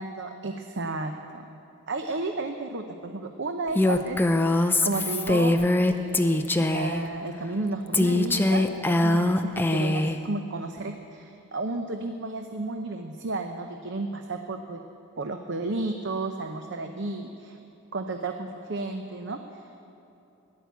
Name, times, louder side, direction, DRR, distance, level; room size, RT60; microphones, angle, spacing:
voice 1, 0.0-1.5 1.9-5.6 5.9-14.8 15.2-17.6 17.9-19.7, right 2 dB, 60° right, 5 dB, 0.7 m, -33 dB
Female speech woman speaking, 3.8-7.0 7.9-10.2, left 2 dB, 10° left, 0.5 m, -22 dB
16.0 x 11.0 x 8.2 m, 2.9 s
head